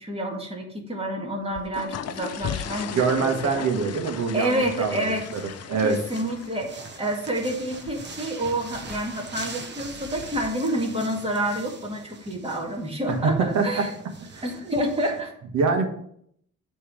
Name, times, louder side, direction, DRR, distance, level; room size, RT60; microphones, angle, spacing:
voice 1, 0.0-3.7 4.3-5.2 5.8-13.9 14.4-15.3, right 1 dB, 20° right, 0 dB, 2.1 m, -28 dB
sound 1, 1.4-10.5, left 9 dB, 55° left, 0.6 m, -39 dB
sound 2, 2.5-15.2, right 3 dB, 35° right, 1.2 m, -43 dB
voice 2, 2.9-5.4 5.7-6.0 13.1-13.8 14.3-14.5 15.5-15.9, right 4 dB, 70° right, 5 dB, 1.5 m, -24 dB
8.3 x 3.5 x 6.2 m, 0.68 s
cardioid pair, 90°, 30 cm